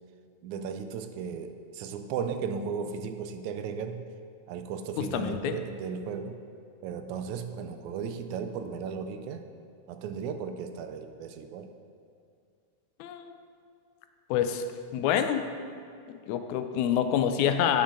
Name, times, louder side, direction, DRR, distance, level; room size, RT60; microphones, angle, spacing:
voice 1, 0.4-4.1 4.5-6.4 6.8-9.4 9.9-11.7, right 6 dB, 80° right, 7 dB, 1.9 m, -35 dB
voice 2, 5.0-5.6 13.0-13.4 14.3-14.6 14.9-15.5 16.1-17.8, left 9 dB, 85° left, 8 dB, 1.9 m, -27 dB
9.9 x 7.4 x 3.7 m, 2.3 s
omnidirectional pair, 3.4 m